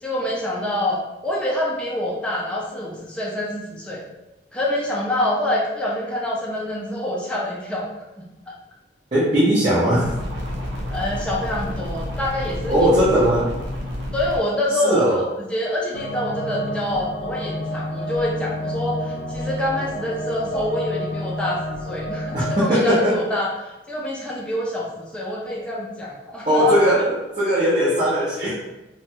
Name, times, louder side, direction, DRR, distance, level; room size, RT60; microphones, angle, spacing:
voice 1, 0.0-4.0 4.5-7.9 8.2-8.3 10.9-13.1 14.1-26.8, left 1 dB, 5° left, -5 dB, 0.4 m, -26 dB
voice 2, 9.1-10.1 12.7-13.5 14.8-15.2 22.3-23.2 26.5-28.5, equal, 40° right, -10 dB, 0.7 m, -19 dB
sound 1, 10.0-14.4, left 1 dB, 85° right, 0.6 m, -30 dB
sound 2, 15.9-22.7, equal, 85° left, 0.3 m, -29 dB
2.9 x 2.2 x 2.9 m, 1.0 s
head